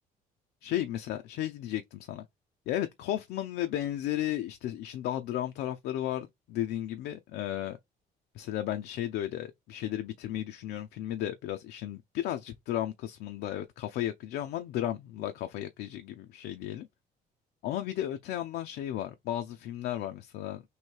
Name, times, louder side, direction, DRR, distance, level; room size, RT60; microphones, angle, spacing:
voice 1, 0.6-2.3 2.7-7.8 8.3-16.9 17.6-20.6, left 12 dB, 80° left, 0.5 m, -34 dB
3.1 x 2.7 x 4.4 m
cardioid pair, 110°, 17 cm